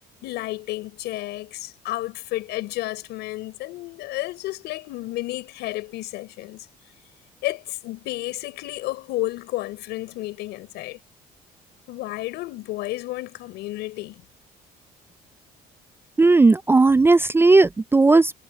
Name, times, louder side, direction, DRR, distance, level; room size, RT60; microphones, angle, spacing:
voice 1, 0.2-6.7 7.4-11.0 11.9-14.2, left 18 dB, 85° left, 5.4 m, -32 dB
voice 2, 16.2-18.3, right 3 dB, 15° right, 0.4 m, -16 dB
cardioid pair, 110°, 17 cm